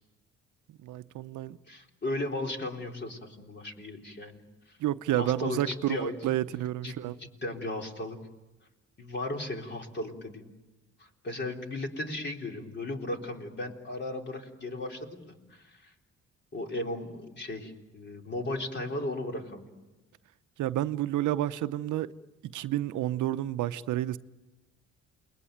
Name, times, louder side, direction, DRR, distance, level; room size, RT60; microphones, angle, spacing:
voice 1, 0.8-1.6 4.8-7.1 20.6-22.1 22.4-24.2, right 13 dB, 80° right, 0.8 m, -30 dB
voice 2, 1.7-4.4 4.7-4.8 5.1-6.2 6.8-8.2 9.0-10.5 11.0-15.9 16.5-19.7, left 2 dB, 35° left, 3.8 m, -36 dB
28.5 x 21.0 x 9.2 m
cardioid pair, 90°, 30 cm